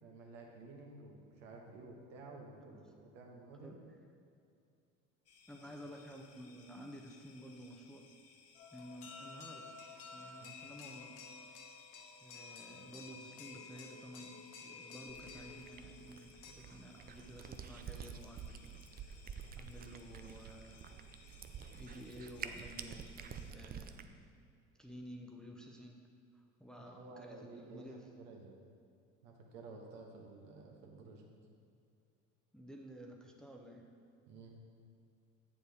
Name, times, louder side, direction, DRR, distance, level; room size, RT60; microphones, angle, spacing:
voice 1, 0.0-3.7 10.4-10.5 26.8-28.5 29.2-31.3 34.3-34.5, right 3 dB, 75° right, 0 dB, 1.4 m, -53 dB
sound 1, 5.3-23.5, left 5 dB, 40° left, 0.8 m, -63 dB
voice 2, 5.5-8.1 8.7-9.7 10.1-11.2 12.2-19.2 19.5-20.9 21.7-24.4 24.8-26.0 26.3-28.1 32.5-33.9, equal, ahead, 1 dB, 0.8 m, -52 dB
sound 2, 8.5-16.5, left 5 dB, 70° left, 1.0 m, -52 dB
Cat, 15.1-24.1, right 7 dB, 25° right, 0.4 m, -49 dB
7.8 x 7.1 x 3.5 m, 2.4 s
hypercardioid pair, 75°, 37 cm